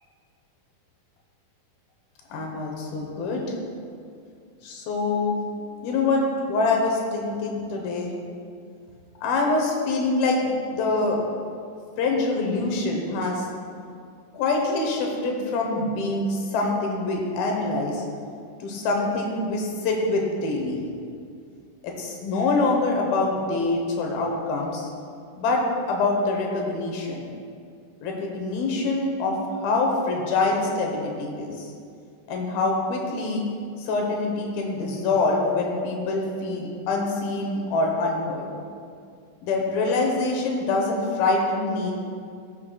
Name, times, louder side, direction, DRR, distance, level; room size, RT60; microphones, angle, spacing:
voice 1, 2.3-3.5 4.6-5.4 5.8-6.2 6.5-8.1 9.2-11.2 12.0-13.4 14.3-18.0 18.6-20.8 21.8-24.9 25.4-25.6 25.9-27.3 28.0-31.7 32.3-33.4 33.8-38.5 39.4-41.9, left 3 dB, 75° left, 0 dB, 2.5 m, -25 dB
14.5 x 6.7 x 2.3 m, 2.3 s
omnidirectional pair, 4.8 m